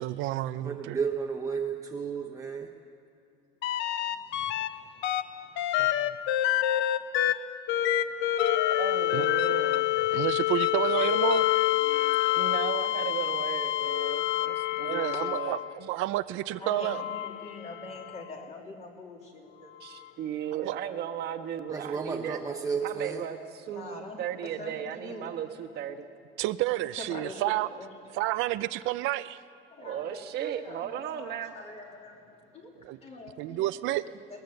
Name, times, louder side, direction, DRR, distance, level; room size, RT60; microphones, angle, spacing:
voice 1, 0.0-1.0 5.8-6.2 9.1-9.3 10.1-11.5 14.8-17.0 20.5-20.7 26.4-27.7 28.1-29.4 32.8-33.0 33.4-34.1, right 16 dB, 75° right, 13 dB, 0.6 m, -30 dB
voice 2, 0.6-2.7 21.7-23.2, right 5 dB, 15° right, 2 dB, 0.8 m, -32 dB
sound 1, 3.6-4.7 5.0-15.8 16.7-18.2 19.9-20.0, left 13 dB, 65° left, 0.8 m, -27 dB
voice 3, 4.1-6.7 7.9-8.7 10.0-10.3 11.8-12.6 15.0-15.1 16.6-19.9 23.7-25.4 26.7-27.9 29.7-33.7, left 2 dB, 30° left, 0 dB, 3.2 m, -46 dB
voice 4, 8.7-9.9 12.3-15.6 19.8-22.4 22.8-26.1 29.8-31.6, right 9 dB, 55° right, 4 dB, 1.3 m, -36 dB
20.5 x 20.5 x 7.9 m, 2.5 s
cardioid pair, 165°, 20 cm